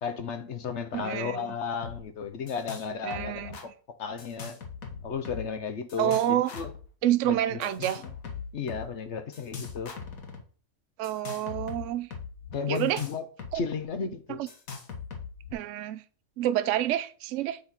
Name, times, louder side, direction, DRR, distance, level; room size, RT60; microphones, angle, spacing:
voice 1, 0.0-4.6 5.0-6.7 7.2-7.7 8.0-8.1 8.5-9.9 12.5-13.3 13.5-14.4, left 6 dB, 60° left, 1.0 m, -34 dB
voice 2, 0.9-1.5 3.0-3.6 6.0-6.5 7.0-8.0 11.0-12.1 12.7-13.0 13.5-13.6 14.3-14.5 15.5-16.0 16.4-17.6, right 12 dB, 70° right, 0.8 m, -28 dB
sound 1, 1.8-2.0 2.2-2.9 3.1-3.6 4.2-5.6 5.9-6.8 7.6-8.9 9.3-10.4 11.0-13.6 13.8-13.9 14.5-15.5, left 6 dB, 80° left, 1.7 m, -40 dB
8.8 x 4.1 x 4.3 m
omnidirectional pair, 1.4 m